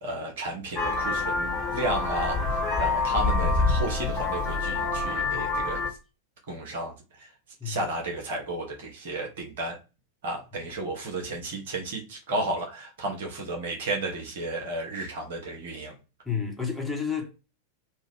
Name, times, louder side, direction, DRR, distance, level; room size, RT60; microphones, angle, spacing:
voice 1, 0.0-6.0 6.5-7.3 7.6-9.8 10.2-15.9, right 2 dB, 55° right, 1.3 m, -33 dB
Vehicle horn car horn honking, 0.8-5.9, left 3 dB, 25° left, 1.3 m, -26 dB
voice 2, 16.2-17.5, left 6 dB, 5° left, 1.3 m, -31 dB
3.5 x 2.4 x 3.6 m
figure-of-eight pair, 90°, 0 cm